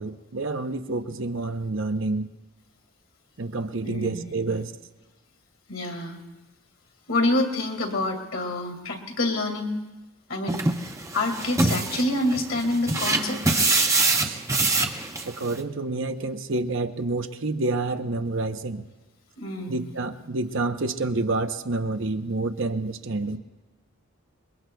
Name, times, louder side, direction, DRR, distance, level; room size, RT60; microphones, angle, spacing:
voice 1, 0.0-2.3 3.4-4.7 14.2-14.4 15.2-18.8 19.7-23.4, right 2 dB, 60° right, 7 dB, 0.8 m, -28 dB
voice 2, 3.8-4.2 5.7-6.2 7.1-9.8 10.3-10.6 11.1-13.7 19.4-19.9, left 2 dB, 60° left, 2 dB, 2.2 m, -27 dB
sound 1, 10.5-15.6, right 3 dB, 15° right, 0.7 m, -24 dB
28.5 x 21.5 x 2.3 m, 1.2 s
head